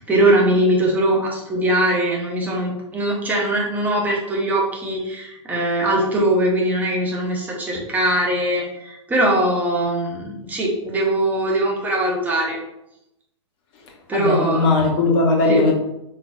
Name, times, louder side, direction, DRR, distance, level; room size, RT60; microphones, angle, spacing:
voice 1, 0.1-12.6 14.1-14.7 15.5-15.6, right 1 dB, 10° right, -2 dB, 0.9 m, -21 dB
voice 2, 14.1-15.7, left 3 dB, 30° left, 0 dB, 0.8 m, -18 dB
4.2 x 3.8 x 2.3 m, 0.85 s
figure-of-eight pair, 110°, 16 cm